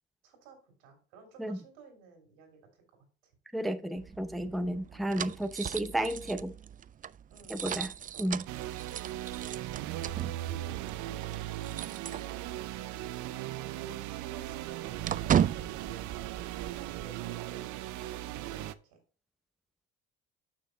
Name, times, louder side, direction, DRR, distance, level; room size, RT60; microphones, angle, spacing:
voice 1, 0.2-2.6 3.2-3.3 4.9-5.1 7.3-7.8 8.0-8.3 9.8-10.4 13.8-17.8 18.1-19.0, right 4 dB, 90° right, 2.9 m, -55 dB
voice 2, 3.5-6.5 7.5-7.9 8.2-8.4, right 1 dB, ahead, 0.7 m, -32 dB
sound 1, 4.0-12.8 13.1-13.2 13.6-17.1, right 9 dB, 30° right, 0.3 m, -36 dB
sound 2, 8.5-18.7, right 14 dB, 75° right, 0.6 m, -38 dB
6.6 x 6.0 x 3.9 m
supercardioid pair, 80°, 30 cm